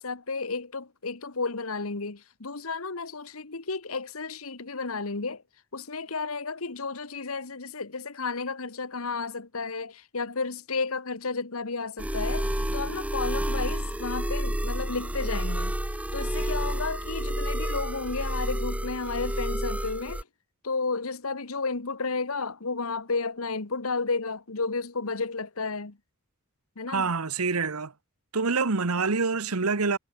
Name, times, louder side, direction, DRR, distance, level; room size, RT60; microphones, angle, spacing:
voice 1, 0.0-5.4 5.7-20.3 20.6-26.0 26.8-27.1, left 4 dB, 70° left, 1.5 m, -32 dB
sound 1, 12.0-20.2, right 1 dB, 5° right, 0.7 m, -30 dB
voice 2, 26.9-27.9 28.3-30.0, right 4 dB, 80° right, 1.3 m, -26 dB
head